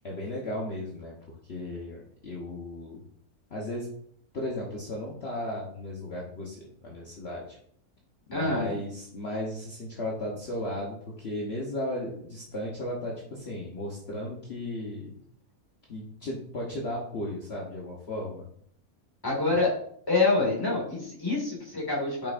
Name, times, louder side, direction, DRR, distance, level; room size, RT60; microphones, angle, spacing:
voice 1, 0.0-1.1 1.5-3.0 3.5-3.9 4.3-7.6 8.3-15.1 15.9-18.5, left 1 dB, 50° left, -3 dB, 1.2 m, -35 dB
voice 2, 8.3-8.8 19.2-19.8 20.1-22.3, left 3 dB, 15° left, -3 dB, 2.0 m, -26 dB
7.2 x 5.6 x 2.5 m, 0.65 s
omnidirectional pair, 1.5 m